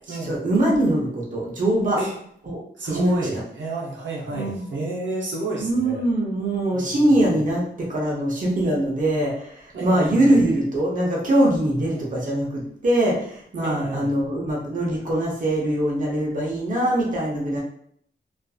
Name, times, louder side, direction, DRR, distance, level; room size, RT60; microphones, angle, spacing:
voice 1, 0.1-2.0 2.5-2.6 2.8-3.3 4.3-4.6 5.6-17.6, right 1 dB, 45° right, -4 dB, 0.7 m, -22 dB
voice 2, 2.8-6.0 6.7-7.4 9.7-10.4 11.9-12.1 13.6-14.2, right 2 dB, 90° right, -4 dB, 0.7 m, -31 dB
2.5 x 2.5 x 2.3 m, 0.66 s
wide cardioid pair, 115°, 19 cm